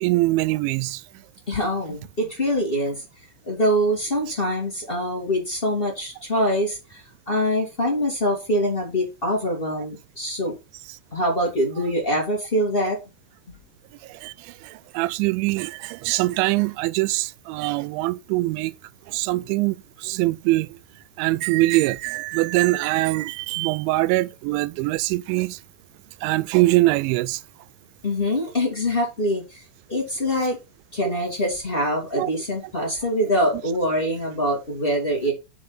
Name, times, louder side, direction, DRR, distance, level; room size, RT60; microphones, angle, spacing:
voice 1, 0.0-1.0 14.1-18.7 19.1-20.7 21.2-25.6 26.2-27.4 31.0-31.1 32.2-32.3, right 19 dB, 90° right, 2.9 m, -23 dB
voice 2, 1.5-3.0 3.4-10.5 11.1-13.0 28.0-29.6 29.9-30.6 30.9-35.3, equal, 40° left, 0.8 m, -24 dB
7.0 x 5.3 x 5.7 m
omnidirectional pair, 5.2 m